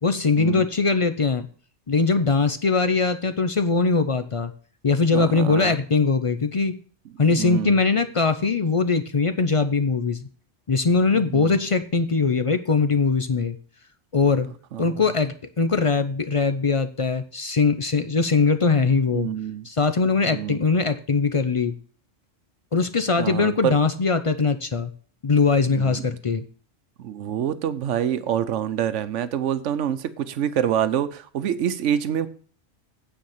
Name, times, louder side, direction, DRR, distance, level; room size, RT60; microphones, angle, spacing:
voice 1, 0.0-1.5 1.9-4.5 4.8-6.8 7.2-10.2 10.7-13.6 14.1-14.5 14.8-19.3 19.6-21.7 22.7-24.9 25.2-26.4, left 4 dB, 40° left, 10 dB, 0.5 m, -21 dB
voice 2, 5.1-5.7 7.4-7.8 11.1-11.6 14.7-14.9 19.1-19.7 20.3-20.6 23.2-23.7 25.6-26.1 27.0-32.3, right 9 dB, 85° right, 13 dB, 1.0 m, -26 dB
9.2 x 4.7 x 7.1 m, 0.43 s
omnidirectional pair, 1.2 m